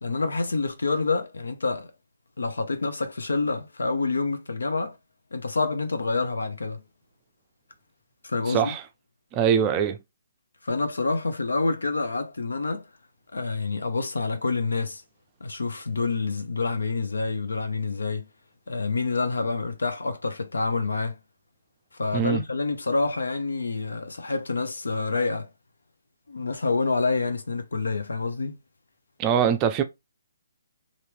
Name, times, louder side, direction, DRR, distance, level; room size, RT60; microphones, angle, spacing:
voice 1, 0.0-1.9 2.4-5.0 5.3-6.8 8.2-8.7 10.6-12.9 13.3-15.0 15.4-18.3 18.7-21.2 21.9-25.5 26.3-28.6, left 3 dB, 80° left, 0.6 m, -27 dB
voice 2, 8.5-8.8 9.3-10.0 22.1-22.4 29.2-29.8, right 8 dB, 25° right, 0.4 m, -22 dB
2.8 x 2.5 x 3.2 m
figure-of-eight pair, 140°, 0 cm